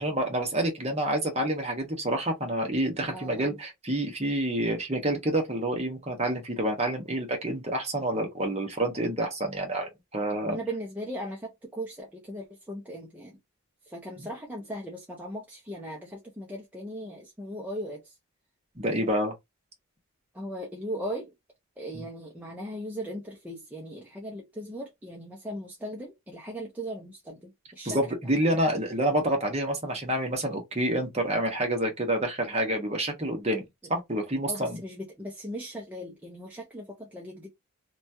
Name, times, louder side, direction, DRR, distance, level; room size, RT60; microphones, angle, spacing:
voice 1, 0.0-10.6 18.8-19.3 21.9-22.1 27.8-33.6 33.9-34.8, right 1 dB, 30° right, 0.9 m, -28 dB
voice 2, 3.1-3.6 10.4-13.4 13.9-18.2 20.3-21.3 21.8-28.0 28.4-28.5 34.5-37.5, equal, 10° right, 0.5 m, -38 dB
2.9 x 2.3 x 2.6 m
head